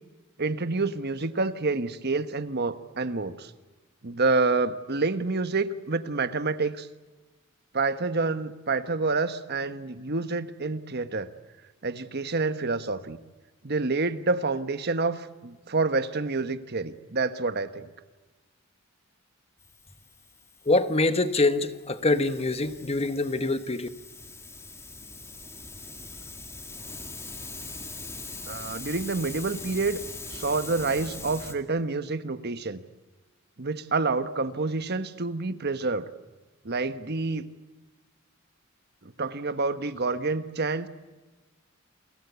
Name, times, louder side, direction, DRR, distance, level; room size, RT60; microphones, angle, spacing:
voice 1, 0.4-3.5 4.0-6.9 7.7-11.3 11.8-13.2 13.6-17.9 28.5-30.0 30.3-32.8 33.6-36.1 36.6-37.5 39.0-40.9, right 3 dB, 50° right, 1.2 m, -28 dB
Hiss, 19.6-31.5, left 3 dB, 15° left, 2.1 m, -42 dB
voice 2, 20.6-23.9, left 2 dB, 30° left, 1.1 m, -24 dB
29.5 x 21.5 x 8.2 m
head